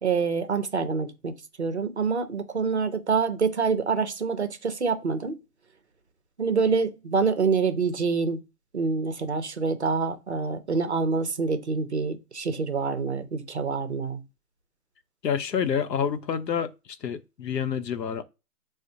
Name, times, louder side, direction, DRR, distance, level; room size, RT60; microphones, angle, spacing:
voice 1, 0.0-5.4 6.4-8.4 8.7-14.2, right 5 dB, 45° right, 0.5 m, -26 dB
voice 2, 15.2-16.7 17.0-18.2, left 7 dB, 85° left, 0.7 m, -28 dB
3.9 x 2.1 x 2.6 m
hypercardioid pair, 165°, 48 cm